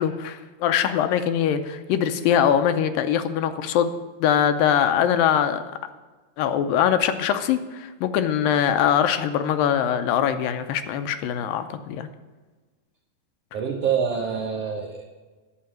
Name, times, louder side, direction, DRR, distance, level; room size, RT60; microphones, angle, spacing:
voice 1, 0.0-3.9 4.2-5.6 6.4-12.1, left 9 dB, 80° left, 10 dB, 2.3 m, -22 dB
voice 2, 13.5-15.1, right 7 dB, 65° right, 0 dB, 1.6 m, -26 dB
11.5 x 6.8 x 8.9 m, 1.3 s
omnidirectional pair, 4.2 m